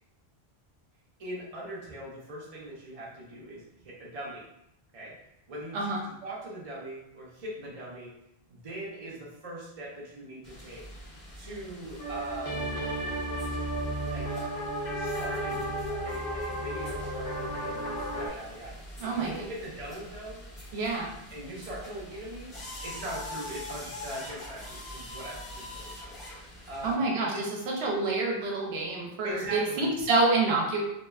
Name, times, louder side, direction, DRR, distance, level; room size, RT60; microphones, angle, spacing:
voice 1, 1.2-4.5 4.9-5.1 5.5-8.1 8.5-10.9 11.3-12.9 14.0-14.4 15.0-16.2 16.5-20.5 21.3-25.9 26.7-27.5 29.2-29.9, right 1 dB, 40° right, -5 dB, 0.7 m, -41 dB
sound 1, 10.4-26.9, left 1 dB, ahead, 1.1 m, -44 dB
sound 2, 12.0-18.3, right 1 dB, 65° left, 0.8 m, -33 dB
voice 2, 19.0-19.3 20.7-21.1 26.8-27.3 27.8-30.8, right 3 dB, 80° right, -1 dB, 0.8 m, -27 dB
2.8 x 2.2 x 2.2 m, 0.82 s
omnidirectional pair, 1.1 m